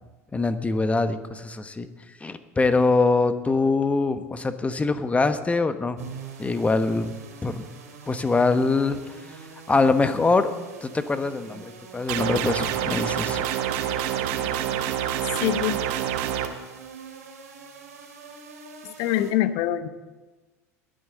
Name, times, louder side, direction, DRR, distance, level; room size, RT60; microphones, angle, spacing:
voice 1, 0.3-1.9 2.2-6.0 6.4-7.1 7.4-7.6 8.1-9.0 9.7-10.5 10.8-13.4, left 3 dB, 15° left, 10 dB, 1.1 m, -23 dB
sound 1, 6.0-19.3, right 5 dB, 85° right, 2.3 m, -44 dB
sound 2, 12.1-16.5, right 10 dB, 65° right, 1.3 m, -27 dB
voice 2, 15.4-15.8 18.8-19.9, left 12 dB, 60° left, 12 dB, 0.9 m, -24 dB
20.5 x 9.2 x 3.9 m, 1.2 s
hypercardioid pair, 80°, 8 cm